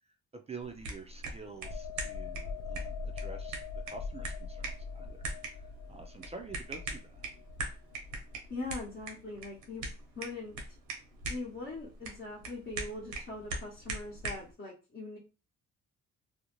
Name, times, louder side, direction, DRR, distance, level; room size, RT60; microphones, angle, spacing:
voice 1, 0.3-3.6 3.9-5.2 5.5-5.6 5.9-7.2, right 4 dB, 20° right, 5 dB, 0.4 m, -47 dB
sound 1, 0.6-14.5, right 2 dB, 85° right, 0.8 m, -42 dB
sound 2, 1.6-9.0 9.4-9.6, left 4 dB, 55° left, 0.4 m, -42 dB
voice 2, 8.5-9.8 10.2-10.6 11.3-15.2, left 2 dB, 40° left, -4 dB, 0.9 m, -41 dB
2.5 x 2.0 x 3.0 m, 0.33 s
cardioid pair, 90°, 30 cm